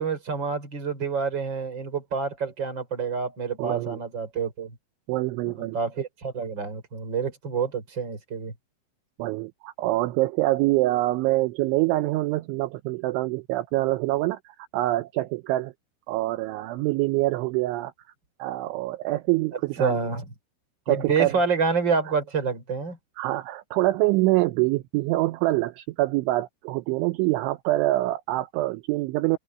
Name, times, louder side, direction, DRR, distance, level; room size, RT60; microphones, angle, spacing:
voice 1, 0.0-4.7 5.6-8.5 19.8-20.3 20.9-23.0, right 5 dB, 25° right, 4.7 m, -27 dB
voice 2, 3.6-4.0 5.1-5.8 9.2-15.7 16.1-17.9 18.4-20.0 20.9-21.4 23.2-29.4, right 18 dB, 80° right, 2.9 m, -25 dB
omnidirectional pair, 5.9 m